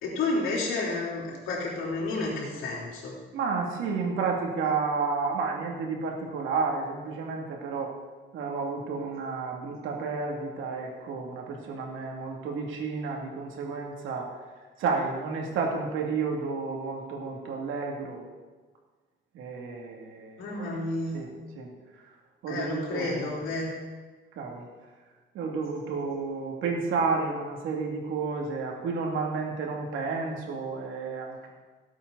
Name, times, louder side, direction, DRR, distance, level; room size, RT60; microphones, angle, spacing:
voice 1, 0.0-3.1 20.4-21.3 22.5-23.7, left 2 dB, 85° left, -3 dB, 3.8 m, -31 dB
voice 2, 3.3-7.9 8.3-14.3 14.8-18.3 19.3-20.7 21.1-21.7 22.4-23.4 24.4-24.7 25.3-31.5, right 4 dB, 85° right, 0 dB, 2.5 m, -31 dB
17.5 x 8.3 x 4.1 m, 1.3 s
cardioid pair, 90°, 20 cm